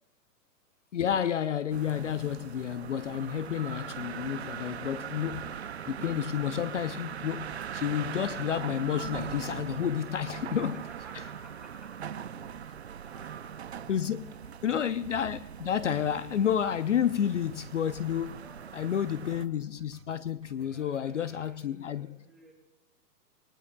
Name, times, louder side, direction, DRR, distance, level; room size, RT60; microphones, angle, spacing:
voice 1, 0.9-10.8 13.9-14.3 14.6-18.4 18.7-22.1, left 9 dB, 50° left, 0.5 m, -30 dB
sound 1, 1.7-19.5, right 8 dB, 45° right, 0.4 m, -41 dB
voice 2, 10.1-14.0 14.3-14.9 18.4-19.6 20.5-22.5, right 2 dB, ahead, 1.8 m, -56 dB
sound 2, 12.9-21.6, right 6 dB, 80° right, 3.0 m, -59 dB
28.0 x 19.5 x 2.2 m
hypercardioid pair, 175°, 48 cm